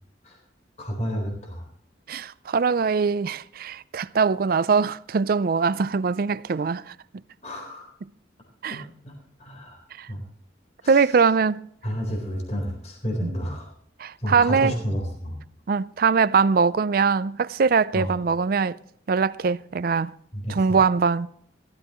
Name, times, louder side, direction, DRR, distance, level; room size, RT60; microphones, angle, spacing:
voice 1, 0.8-1.6 7.4-7.9 8.7-9.1 9.4-9.8 10.1-10.2 10.8-11.1 11.8-13.7 14.2-15.4 17.9-18.1 20.3-20.8, equal, 40° left, 4.1 m, -30 dB
voice 2, 2.1-6.9 8.6-8.8 10.0-10.1 10.9-11.7 13.2-13.3 14.0-14.7 15.7-18.8 19.1-20.1 20.5-21.3, right 5 dB, 50° right, 0.4 m, -22 dB
16.5 x 14.0 x 3.1 m
head